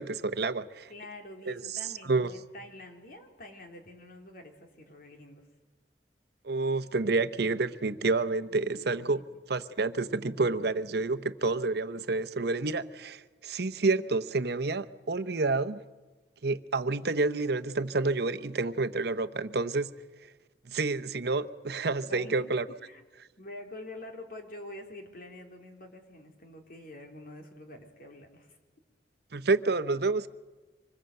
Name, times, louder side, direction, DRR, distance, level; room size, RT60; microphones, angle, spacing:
voice 1, 0.0-0.9 1.5-1.8 2.0-2.3 6.4-9.2 9.5-15.8 16.4-19.9 20.7-22.6 29.3-30.3, right 3 dB, 65° right, 12 dB, 0.9 m, -29 dB
voice 2, 0.9-5.5 9.1-9.2 22.0-22.4 22.8-23.0 23.4-28.6, left 1 dB, 55° left, 3 dB, 3.7 m, -46 dB
25.5 x 21.0 x 7.8 m, 1.3 s
head